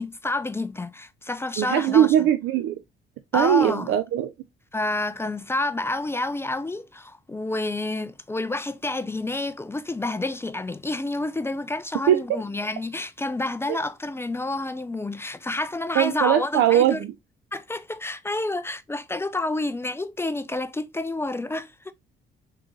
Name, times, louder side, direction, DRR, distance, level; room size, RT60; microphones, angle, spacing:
voice 1, 0.0-2.1 3.3-3.9 4.7-17.0 17.5-21.9, left 2 dB, 10° left, 0.3 m, -29 dB
voice 2, 1.6-2.8 3.3-4.3 12.1-12.2 13.7-13.8 16.0-17.1, right 11 dB, 80° right, 0.4 m, -20 dB
3.8 x 3.6 x 3.0 m
cardioid pair, 90°, 20 cm